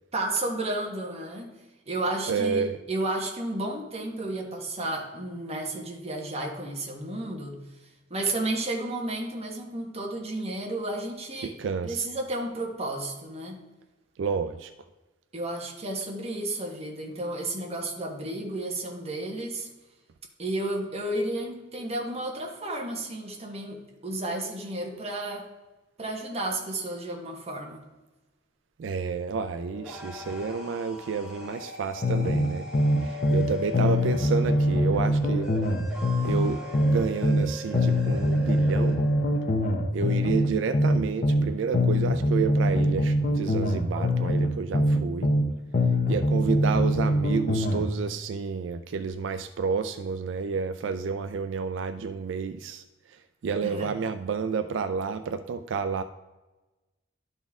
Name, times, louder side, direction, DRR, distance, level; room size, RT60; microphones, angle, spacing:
voice 1, 0.1-1.6 1.9-7.6 8.1-11.5 11.8-13.6 15.3-19.7 20.4-25.5 26.0-27.8 43.9-44.0 53.6-53.9, right 2 dB, 35° right, 0 dB, 1.4 m, -32 dB
voice 2, 2.3-2.8 11.4-12.1 14.2-14.7 28.8-32.7 33.0-35.5 36.2-39.0 39.9-45.3 46.1-52.8 53.4-56.0, right 5 dB, 80° right, 10 dB, 0.4 m, -30 dB
sound 1, 29.5-39.9, left 3 dB, 5° right, 1.5 m, -39 dB
sound 2, 32.0-33.5 33.7-37.5 37.7-41.5 41.7-45.5 45.7-47.9, left 1 dB, 45° left, 0.7 m, -23 dB
12.0 x 4.2 x 3.6 m, 1.1 s
head